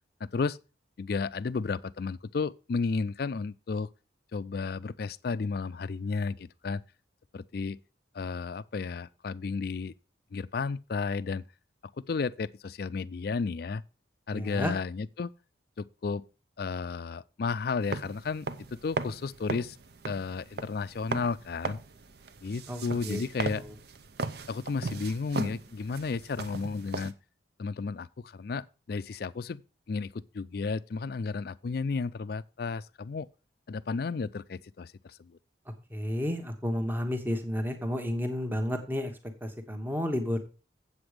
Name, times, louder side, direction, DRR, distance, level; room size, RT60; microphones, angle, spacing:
voice 1, 0.2-0.6 1.0-3.9 4.3-6.8 7.3-7.8 8.1-9.9 10.3-11.4 12.0-13.8 14.3-15.3 15.8-16.2 16.6-19.8 20.0-21.8 22.4-23.6 24.5-27.1 27.6-29.6 29.9-33.3 33.7-35.3, left 4 dB, 55° left, 0.4 m, -33 dB
voice 2, 14.3-14.7 22.7-23.2 23.5-23.7 35.9-39.1 39.4-40.4, equal, 10° right, 1.1 m, -31 dB
sound 1, 17.8-27.1, right 3 dB, 55° right, 0.7 m, -38 dB
8.0 x 7.9 x 4.9 m
head